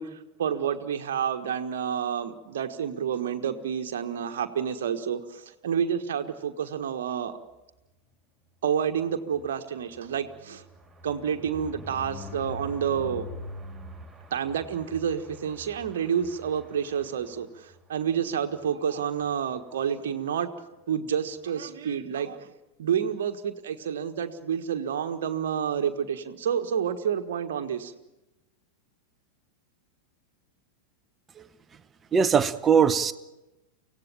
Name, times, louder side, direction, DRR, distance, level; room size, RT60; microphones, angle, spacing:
voice 1, 0.0-7.4 8.6-10.6 11.0-13.3 14.3-20.5 20.9-22.5 22.8-27.9, right 8 dB, 60° right, 6 dB, 1.5 m, -29 dB
sound 1, 9.0-17.8 18.2-18.4 18.6-18.7 19.0-19.3, left 2 dB, 5° right, 4.1 m, -44 dB
voice 2, 32.1-33.1, right 7 dB, 20° right, 13 dB, 0.9 m, -21 dB
25.0 x 17.0 x 8.8 m, 1.0 s
figure-of-eight pair, 90°, 0 cm